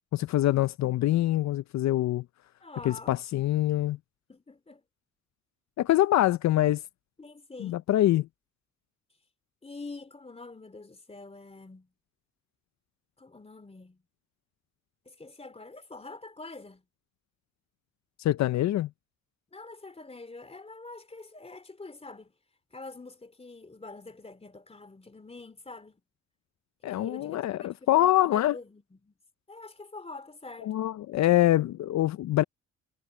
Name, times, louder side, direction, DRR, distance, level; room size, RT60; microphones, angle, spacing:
voice 1, 0.1-2.2 2.8-4.0 5.8-6.8 7.6-8.2 18.2-18.9 26.8-28.6 30.6-32.4, left 14 dB, 65° left, 0.6 m, -24 dB
voice 2, 2.6-3.2 4.3-4.8 7.2-7.9 9.6-11.9 13.2-14.0 15.0-16.8 19.5-22.3 22.7-26.0 26.9-29.1 29.5-30.7, left 3 dB, 20° left, 3.1 m, -46 dB
cardioid pair, 90°, 30 cm